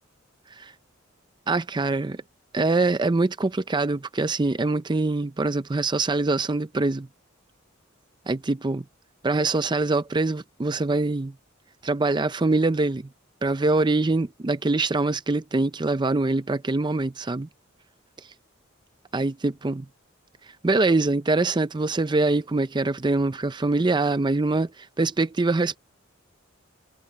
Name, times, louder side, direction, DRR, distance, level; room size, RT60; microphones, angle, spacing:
voice 1, 1.5-2.2 2.5-7.1 8.3-8.8 9.2-11.3 11.8-13.1 13.4-17.5 19.1-19.9 20.6-25.8, right 3 dB, 20° right, 0.5 m, -24 dB
head